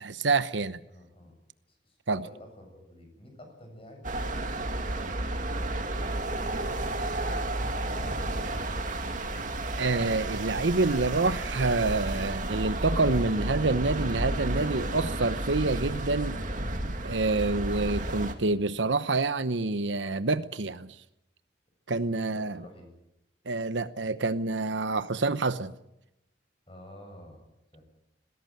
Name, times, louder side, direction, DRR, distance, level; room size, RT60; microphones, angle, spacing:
voice 1, 0.0-0.8 2.1-2.2 9.8-16.4 17.0-20.9 21.9-22.6 23.5-25.7, right 3 dB, 90° right, 1.0 m, -27 dB
voice 2, 0.9-1.3 1.7-4.1 4.8-8.6 21.9-22.9 26.7-27.4 27.7-27.8, equal, 30° left, 7.8 m, -50 dB
sound 1, 4.0-18.3, right 1 dB, 45° right, 2.3 m, -32 dB
20.5 x 17.0 x 9.3 m
head